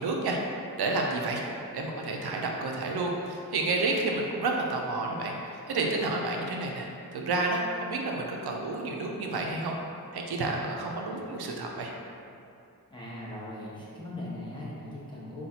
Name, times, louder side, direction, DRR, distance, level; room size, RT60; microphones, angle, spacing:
voice 1, 0.0-1.4 1.7-9.8 10.1-11.9, right 2 dB, 75° right, 0 dB, 0.5 m, -30 dB
voice 2, 12.9-15.5, left 1 dB, 10° left, -7 dB, 1.1 m, -39 dB
5.5 x 2.4 x 2.7 m, 2.6 s
cardioid pair, 40°, 39 cm